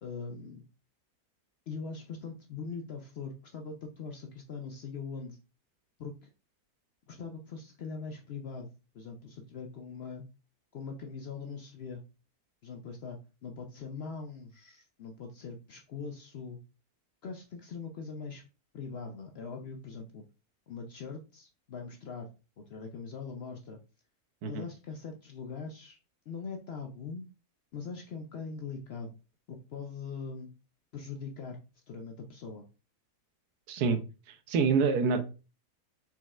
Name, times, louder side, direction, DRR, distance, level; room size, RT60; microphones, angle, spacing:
voice 1, 0.0-0.6 1.7-5.4 6.0-6.3 7.1-10.2 10.7-12.0 12.6-16.6 17.2-18.5 18.7-20.2 20.7-22.3 22.6-23.8 24.5-26.0 26.3-27.2 27.7-29.2 29.5-30.5 30.9-31.6 31.9-32.6, left 5 dB, 65° left, 3 dB, 0.6 m, -41 dB
voice 2, 33.7-34.0 34.3-35.2, right 5 dB, 85° right, 8 dB, 1.2 m, -27 dB
4.5 x 4.1 x 2.4 m, 0.32 s
omnidirectional pair, 1.6 m